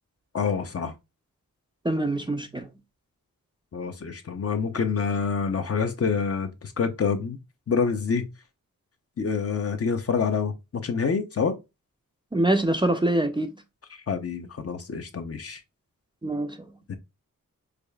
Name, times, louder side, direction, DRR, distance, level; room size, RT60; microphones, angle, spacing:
voice 1, 0.3-0.9 3.7-7.4 7.7-8.3 9.2-11.6 13.9-15.6 16.9-17.0, left 5 dB, 45° left, 0.6 m, -27 dB
voice 2, 1.8-2.7 12.3-13.5 16.2-16.6, right 1 dB, 15° right, 0.4 m, -24 dB
4.9 x 2.3 x 2.2 m
wide cardioid pair, 80°, 34 cm